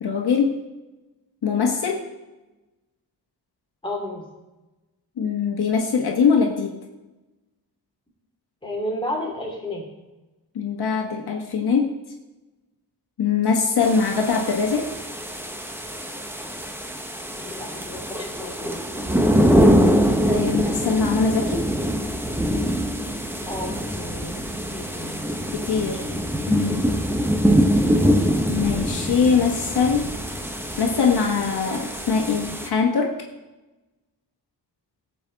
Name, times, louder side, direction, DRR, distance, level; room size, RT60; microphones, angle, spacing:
voice 1, 0.0-0.5 1.4-2.0 5.2-6.8 10.5-11.9 13.2-14.9 20.3-21.6 25.5-26.0 26.5-26.9 28.5-30.1 30.8-33.1, left 5 dB, 65° left, 1 dB, 1.5 m, -22 dB
voice 2, 3.8-4.2 8.6-9.8 17.3-19.6 23.5-25.2, left 1 dB, 10° left, -2 dB, 3.0 m, -33 dB
sound 1, 13.8-32.7, equal, 5° right, 1.0 m, -23 dB
17.0 x 7.9 x 4.1 m, 1.1 s
wide cardioid pair, 135°, 41 cm